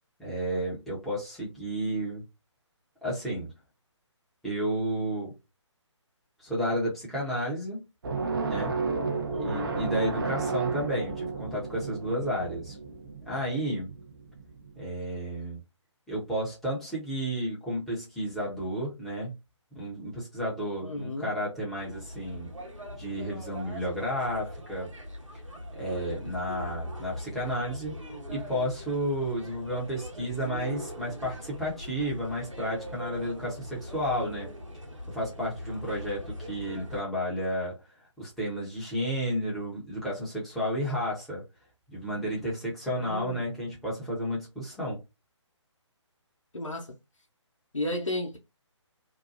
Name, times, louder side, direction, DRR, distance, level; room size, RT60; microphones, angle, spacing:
voice 1, 0.2-2.2 3.0-3.5 4.4-5.3 6.4-7.8 8.4-8.7 9.4-12.8 13.3-13.9 14.8-15.6 16.1-19.3 19.7-22.5 23.0-24.9 25.7-27.9 28.3-34.5 35.1-37.8 38.2-41.4 41.9-45.0, equal, ahead, 0.9 m, -32 dB
sound 1, 8.0-14.8, right 4 dB, 45° right, 0.6 m, -33 dB
voice 2, 9.3-9.8 20.8-21.3 43.0-43.4 46.5-46.9 47.7-48.4, left 1 dB, 85° left, 0.8 m, -33 dB
sound 2, 21.8-37.0, equal, 85° right, 1.0 m, -41 dB
2.8 x 2.2 x 2.6 m
figure-of-eight pair, 145°, 16 cm